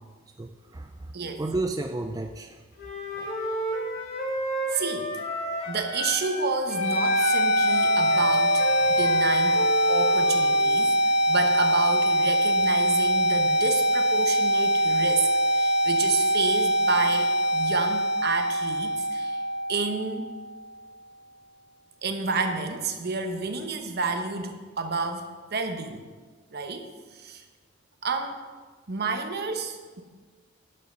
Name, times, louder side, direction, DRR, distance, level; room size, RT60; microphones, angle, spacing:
voice 1, 0.4-1.1 1.4-2.6 3.1-3.3, right 2 dB, 20° right, 4 dB, 0.3 m, -32 dB
Wind instrument woodwind instrument, 2.8-6.4 6.7-10.6, left 1 dB, 55° left, 2.4 m, -32 dB
voice 2, 4.7-5.1 5.7-10.9 11.3-19.4 19.7-20.3 22.0-26.0 26.5-27.4 28.0-28.4 28.9-30.0, right 4 dB, 55° right, 6 dB, 0.9 m, -30 dB
sound 1, 6.6-20.6, equal, 80° left, 1.3 m, -23 dB
10.5 x 5.5 x 5.5 m, 1.4 s
head